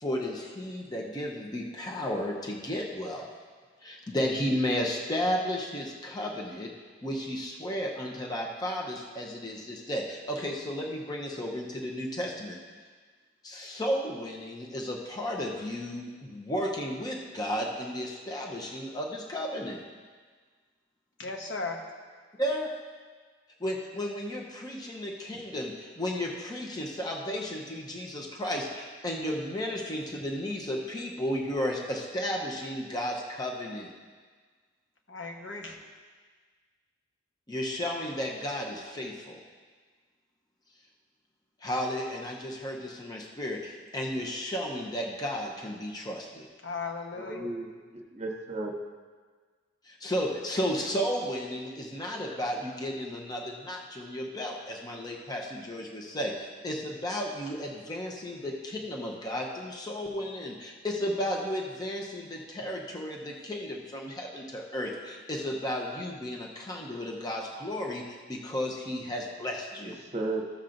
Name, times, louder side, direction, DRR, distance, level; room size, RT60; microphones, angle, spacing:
voice 1, 0.0-3.2 3.8-6.7 7.0-12.6 13.4-19.8 22.4-22.7 23.6-33.9 37.5-39.4 41.6-46.5 49.9-70.0, equal, 20° left, -1 dB, 0.8 m, -33 dB
voice 2, 21.2-21.8 35.1-35.8 46.6-47.5, left 3 dB, 70° left, 1 dB, 1.1 m, -36 dB
voice 3, 47.1-48.8 69.8-70.5, right 2 dB, 35° right, 2 dB, 1.0 m, -35 dB
14.5 x 7.2 x 2.6 m, 1.5 s
head